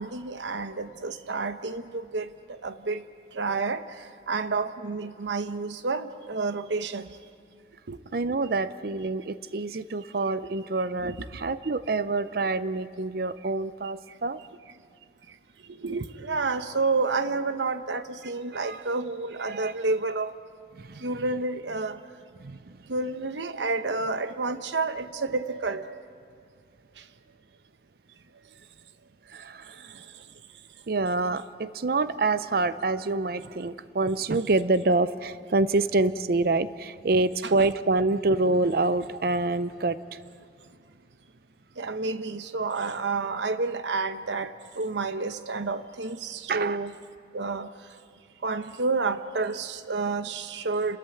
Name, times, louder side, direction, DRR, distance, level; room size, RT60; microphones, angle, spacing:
voice 1, 0.0-3.0 3.3-7.2 7.9-8.0 10.4-10.5 11.0-11.5 15.3-15.4 15.6-20.4 21.0-22.0 22.9-26.1 27.0-27.1 29.7-30.3 37.4-37.5 41.8-46.9 47.3-47.7 48.4-51.0, right 3 dB, 90° right, 0.9 m, -30 dB
voice 2, 8.1-14.4 18.5-18.8 19.5-19.7 20.7-21.1 22.4-22.8 29.3-29.9 30.9-40.2 46.5-46.8, right 3 dB, 55° right, 0.5 m, -26 dB
29.5 x 14.0 x 9.1 m
head